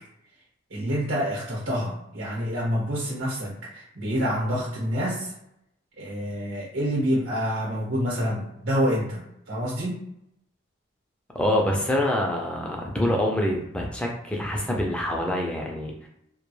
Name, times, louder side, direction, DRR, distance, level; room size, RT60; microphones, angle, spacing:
voice 1, 0.7-5.3 6.0-10.0, equal, 75° right, -5 dB, 0.9 m, -27 dB
voice 2, 11.3-16.1, left 1 dB, 5° left, -1 dB, 0.4 m, -26 dB
2.2 x 2.2 x 3.1 m, 0.79 s
head